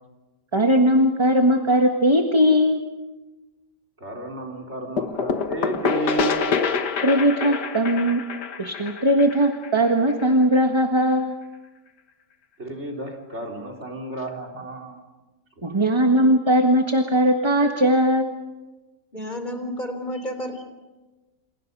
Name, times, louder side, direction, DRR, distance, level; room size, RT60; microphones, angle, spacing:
voice 1, 0.5-2.8 7.0-8.2 8.6-11.3 15.6-18.3, equal, 15° right, 4 dB, 1.5 m, -19 dB
voice 2, 4.0-6.4 12.6-15.0, right 2 dB, 40° right, 5 dB, 4.1 m, -32 dB
sound 1, 5.0-10.5, left 5 dB, 75° left, 1.9 m, -26 dB
voice 3, 19.1-20.7, equal, 25° left, 6 dB, 3.7 m, -31 dB
29.0 x 28.5 x 5.5 m, 1.1 s
omnidirectional pair, 1.8 m